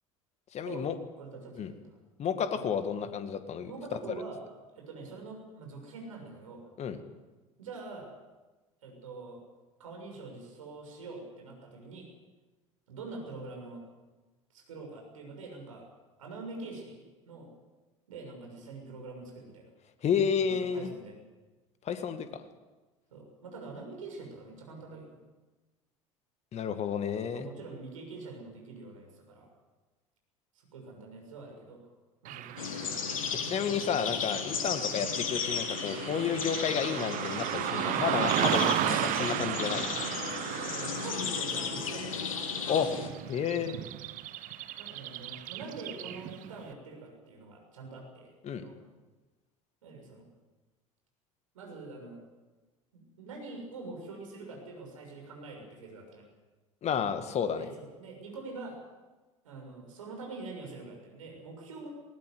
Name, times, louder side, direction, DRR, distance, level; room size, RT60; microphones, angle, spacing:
voice 1, 0.5-1.0 1.6-1.7 2.2-3.7 6.8-7.0 20.0-20.9 21.8-22.4 26.5-27.5 33.4-39.9 42.7-42.9 43.3-43.7 48.4-48.6 56.8-57.6, left 7 dB, 40° left, 9 dB, 2.1 m, -31 dB
voice 2, 1.2-2.0 2.5-2.7 3.6-4.4 4.8-6.7 7.6-8.1 8.8-9.4 9.8-12.1 12.9-13.8 14.5-15.9 16.2-17.5 18.1-19.7 20.4-21.1 23.1-25.2 27.3-29.5 30.5-31.8 32.2-33.2 34.9-35.1 40.5-42.1 43.6-43.7 44.8-48.8 49.8-50.2 51.5-52.2 52.9-56.3 57.5-58.8 59.4-61.9, right 3 dB, 75° right, 2 dB, 6.9 m, -45 dB
Car passing by / Traffic noise roadway noise, 32.2-46.5, right 13 dB, 50° right, 1.1 m, -35 dB
sound 1, 32.6-43.1, left 6 dB, 80° left, 2.2 m, -35 dB
20.5 x 18.5 x 8.0 m, 1.2 s
figure-of-eight pair, 70°, 17 cm